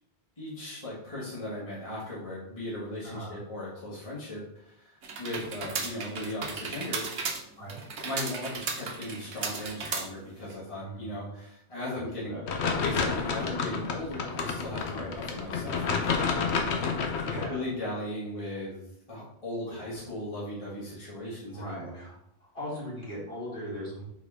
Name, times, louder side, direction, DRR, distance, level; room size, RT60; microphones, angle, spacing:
voice 1, 0.4-7.1 8.0-12.4 12.8-16.6 17.3-18.8 19.1-22.0, left 1 dB, 30° left, -7 dB, 1.7 m, -37 dB
voice 2, 3.0-3.4 7.6-7.8 10.8-11.0 11.9-12.8 14.9-15.1 17.2-17.6 19.6-19.8 21.5-22.2 22.5-24.0, equal, 60° left, -7 dB, 2.9 m, -39 dB
sound 1, 5.0-10.5, right 4 dB, 90° right, 1.2 m, -35 dB
sound 2, 12.5-17.5, left 5 dB, 90° left, 1.1 m, -30 dB
5.8 x 4.8 x 3.6 m, 0.76 s
omnidirectional pair, 1.1 m